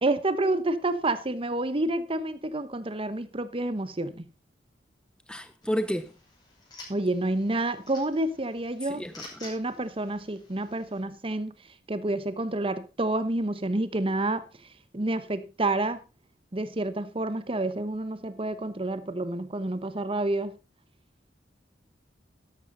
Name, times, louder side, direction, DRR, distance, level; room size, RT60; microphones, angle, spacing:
voice 1, 0.0-4.3 6.9-9.0 9.4-11.5 11.9-14.4 14.9-16.0 16.5-20.6, right 2 dB, 30° right, 1.1 m, -29 dB
voice 2, 5.3-6.1 8.8-9.4, equal, 5° left, 0.7 m, -31 dB
sound 1, 5.6-11.0, left 2 dB, 25° left, 5.5 m, -50 dB
13.0 x 11.5 x 4.0 m
head